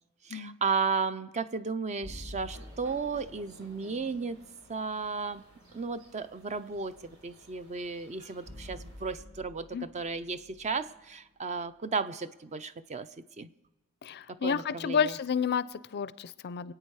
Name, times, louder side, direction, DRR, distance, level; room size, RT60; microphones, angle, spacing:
voice 1, 0.2-4.4 4.7-5.4 5.7-13.1 13.4-13.5 14.3-15.2, right 4 dB, 30° right, 12 dB, 0.5 m, -34 dB
sound 1, 2.0-4.2 8.5-11.7, left 1 dB, 60° right, 2.2 m, -48 dB
sound 2, 2.4-9.2, right 1 dB, 85° right, 3.4 m, -57 dB
voice 2, 14.0-16.7, left 7 dB, 50° left, 17 dB, 0.4 m, -30 dB
26.0 x 8.8 x 4.8 m, 0.98 s
head